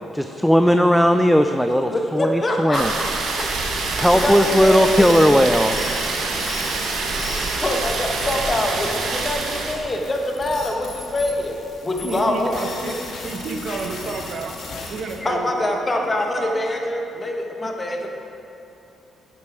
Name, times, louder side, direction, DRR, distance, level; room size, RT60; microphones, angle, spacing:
voice 1, 0.1-2.9 4.0-5.8, equal, ahead, 7 dB, 0.4 m, -17 dB
voice 2, 1.8-3.4 4.1-5.2 7.6-11.6 11.8-12.9 15.2-18.1, left 1 dB, 25° left, 2 dB, 1.2 m, -25 dB
sound 1, 2.7-9.8, right 3 dB, 75° right, 1.3 m, -25 dB
sound 2, 4.0-15.2, left 3 dB, 70° left, 1.7 m, -37 dB
voice 3, 12.0-12.9 13.2-14.5 14.9-16.1 16.3-16.6 17.6-17.7, right 3 dB, 55° right, 3 dB, 1.0 m, -30 dB
9.7 x 7.5 x 4.8 m, 2.7 s
cardioid pair, 90°, 0 cm